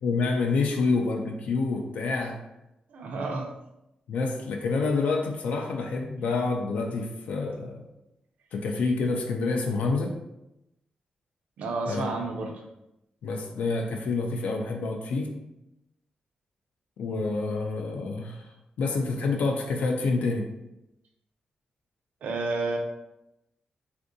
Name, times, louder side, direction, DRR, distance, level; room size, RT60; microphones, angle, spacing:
voice 1, 0.0-2.4 4.1-7.8 8.5-10.2 11.9-12.1 13.2-15.4 17.0-18.4 18.8-20.5, left 3 dB, 80° left, 2 dB, 0.4 m, -27 dB
voice 2, 2.9-3.5 11.6-12.6 22.2-22.8, right 3 dB, 90° right, 1 dB, 0.5 m, -30 dB
3.5 x 2.5 x 2.6 m, 0.90 s
wide cardioid pair, 170°, 2 cm